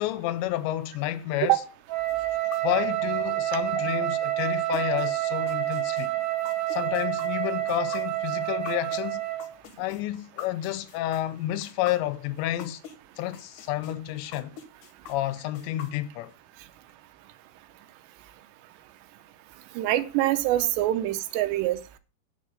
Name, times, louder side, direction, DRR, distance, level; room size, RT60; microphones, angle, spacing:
voice 1, 0.0-1.7 2.6-6.1 6.7-9.2 9.8-12.8 13.2-14.5 15.1-16.3, left 14 dB, 90° left, 2.9 m, -30 dB
Wind instrument woodwind instrument, 1.9-9.5, right 15 dB, 50° right, 3.8 m, -28 dB
sound 1, 2.1-13.0 13.3-16.3, left 9 dB, 70° left, 2.1 m, -43 dB
voice 2, 19.8-22.0, right 14 dB, 80° right, 2.9 m, -25 dB
10.0 x 4.6 x 7.6 m
omnidirectional pair, 4.9 m